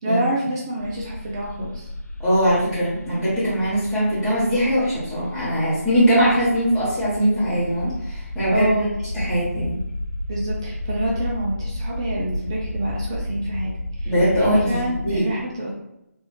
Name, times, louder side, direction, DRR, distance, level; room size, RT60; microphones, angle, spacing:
voice 1, 0.0-1.9 8.5-8.9 10.3-15.7, right 1 dB, 15° right, -4 dB, 0.4 m, -27 dB
sound 1, 0.8-15.2, left 1 dB, 85° left, 0.5 m, -32 dB
voice 2, 2.2-8.7 9.1-9.8 14.0-15.3, equal, 5° left, -13 dB, 1.0 m, -21 dB
3.0 x 2.4 x 3.1 m, 0.85 s
figure-of-eight pair, 155°, 9 cm